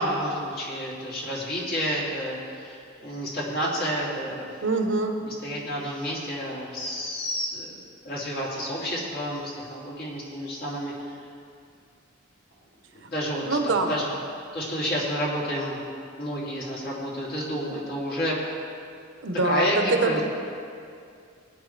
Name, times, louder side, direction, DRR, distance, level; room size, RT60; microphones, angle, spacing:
voice 1, 0.0-4.6 5.4-7.7 8.0-11.1 12.9-14.1 14.5-18.4 19.4-20.2, equal, 50° left, -6 dB, 3.1 m, -30 dB
voice 2, 4.6-5.2 13.0-13.1 13.4-13.9 19.2-20.2, right 3 dB, 65° right, 4 dB, 1.1 m, -24 dB
19.5 x 9.5 x 3.4 m, 2.4 s
head